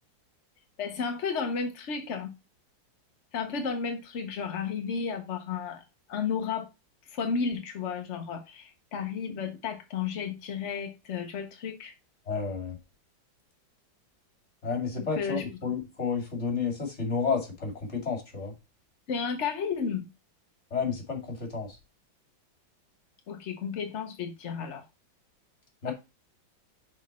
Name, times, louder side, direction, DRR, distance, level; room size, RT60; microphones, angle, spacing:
voice 1, 0.8-2.3 3.3-5.8 6.1-6.7 7.0-11.9 15.0-15.4 19.1-20.1 23.3-24.9 25.8-25.9, left 6 dB, 50° left, 0.8 m, -33 dB
voice 2, 12.3-12.8 14.6-18.5 20.7-21.8 25.8-25.9, left 5 dB, 35° left, 2.7 m, -31 dB
6.3 x 5.2 x 4.0 m
omnidirectional pair, 2.2 m